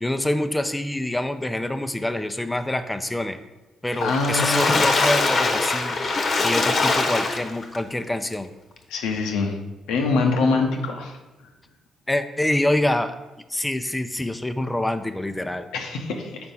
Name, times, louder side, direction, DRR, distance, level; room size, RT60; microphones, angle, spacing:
voice 1, 0.0-3.4 3.8-6.0 6.4-8.5 12.1-13.1 13.5-15.7, left 1 dB, 10° left, 8 dB, 0.5 m, -26 dB
Water / Splash splatter, 3.9-7.8 8.3-8.4 8.8-8.9, left 3 dB, 50° left, 0.9 m, -22 dB
voice 2, 4.0-4.7 8.9-9.5 9.9-11.1 15.7-16.3, left 4 dB, 90° left, 2 dB, 0.8 m, -24 dB
4.6 x 4.3 x 5.4 m, 1.1 s
supercardioid pair, 65°, 0 cm